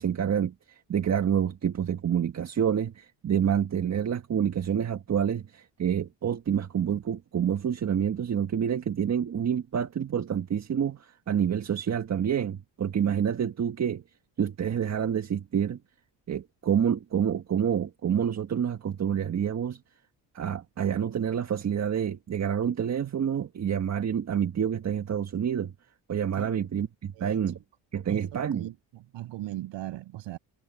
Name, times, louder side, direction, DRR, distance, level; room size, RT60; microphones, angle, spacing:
voice 1, 0.0-14.0 14.4-15.8 16.3-19.8 20.3-25.7 26.1-27.5 27.9-28.7, right 8 dB, 35° right, 1.6 m, -28 dB
voice 2, 26.4-26.7 27.1-27.5 28.1-30.4, right 15 dB, 80° right, 5.9 m, -39 dB
cardioid pair, 125°, 44 cm